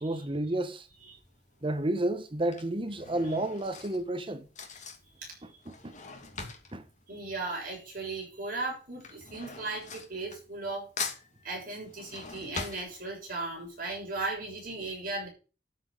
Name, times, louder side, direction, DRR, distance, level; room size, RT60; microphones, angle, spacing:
voice 1, 0.0-0.9 1.6-4.4 5.7-5.9 6.7-6.8, right 1 dB, 30° right, 1.0 m, -31 dB
Drawer open or close / Cutlery silverware, 1.0-1.4 2.2-8.1 8.3-10.7 11.0-13.5 13.9-14.0 14.2-14.3, left 5 dB, 45° left, 2.7 m, -42 dB
voice 2, 7.1-10.9 11.4-15.3, right 3 dB, 50° right, 7.0 m, -37 dB
12.5 x 6.3 x 6.5 m
head